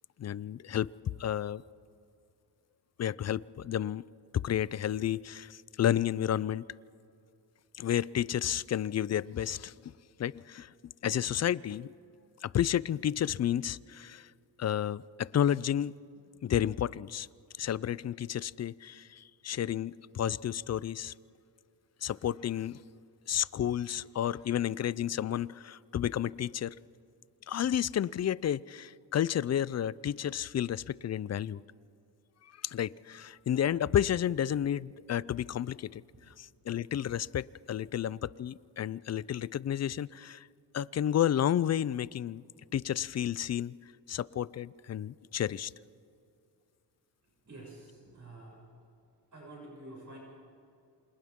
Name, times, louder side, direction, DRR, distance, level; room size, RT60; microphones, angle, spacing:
voice 1, 0.2-0.9 1.2-1.6 3.0-4.0 4.3-6.6 7.8-9.7 10.2-10.7 11.0-11.9 12.4-14.3 14.6-15.9 16.4-17.3 17.6-21.1 22.0-22.8 23.3-26.7 27.5-31.6 32.6-36.0 36.4-40.5 40.7-42.4 42.7-43.7 44.1-45.7, left 10 dB, 40° left, 21 dB, 0.4 m, -31 dB
voice 2, 47.4-48.6 49.3-50.2, right 2 dB, 45° right, -4 dB, 6.8 m, -48 dB
28.5 x 26.5 x 3.7 m, 2.4 s
cardioid pair, 95°, 43 cm